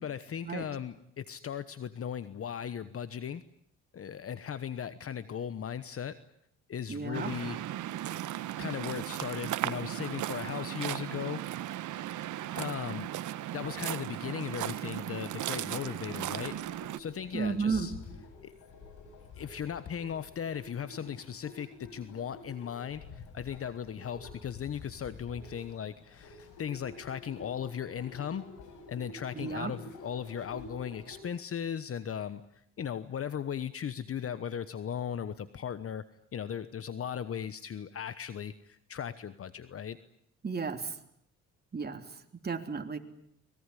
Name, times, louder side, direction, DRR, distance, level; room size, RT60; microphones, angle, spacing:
voice 1, 0.0-3.4 3.9-6.2 6.7-7.6 8.6-11.4 12.5-17.9 18.4-18.5 19.3-28.5 28.9-32.4 32.8-36.0 36.3-40.0, left 8 dB, 50° left, 14 dB, 1.2 m, -37 dB
voice 2, 6.9-7.3 17.3-17.9 29.3-29.7 40.4-40.9 41.7-42.0 42.4-43.0, right 5 dB, 30° right, 6 dB, 3.4 m, -33 dB
Waves surf, 7.1-17.0, right 13 dB, 75° right, 1.2 m, -36 dB
sound 1, 16.0-31.2, left 3 dB, 85° left, 6.8 m, -49 dB
24.5 x 21.0 x 10.0 m, 0.72 s
cardioid pair, 90°, 30 cm